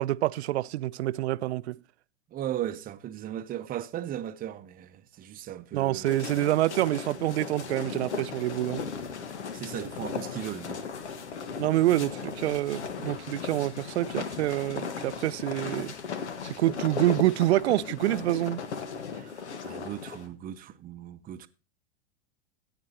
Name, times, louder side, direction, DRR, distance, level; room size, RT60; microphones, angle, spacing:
voice 1, 0.0-1.8 5.7-8.8 11.6-15.9 16.4-18.6, right 15 dB, 75° right, 0.5 m, -27 dB
voice 2, 2.3-6.1 9.5-10.8 19.1-21.5, right 11 dB, 25° right, 0.7 m, -37 dB
sound 1, 6.0-20.3, left 6 dB, 85° left, 1.4 m, -37 dB
14.0 x 8.9 x 2.9 m
hypercardioid pair, 105°, 33 cm